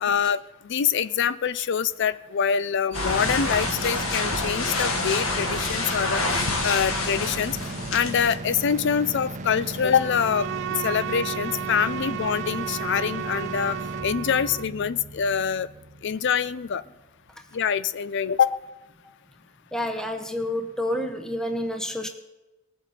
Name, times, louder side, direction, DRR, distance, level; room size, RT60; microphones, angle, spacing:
voice 1, 0.0-7.6 7.9-10.5 10.8-15.7 16.0-16.8 17.5-18.6, left 7 dB, 60° left, 17 dB, 0.5 m, -25 dB
sound 1, 2.9-8.4, left 2 dB, 80° left, 1.6 m, -27 dB
sound 2, 2.9-16.8, right 2 dB, 35° right, 0.8 m, -36 dB
Bowed string instrument, 10.0-14.8, right 9 dB, 60° right, 0.3 m, -33 dB
voice 2, 19.7-22.1, left 1 dB, 5° left, 5 dB, 0.8 m, -29 dB
20.0 x 7.9 x 4.2 m, 1.1 s
head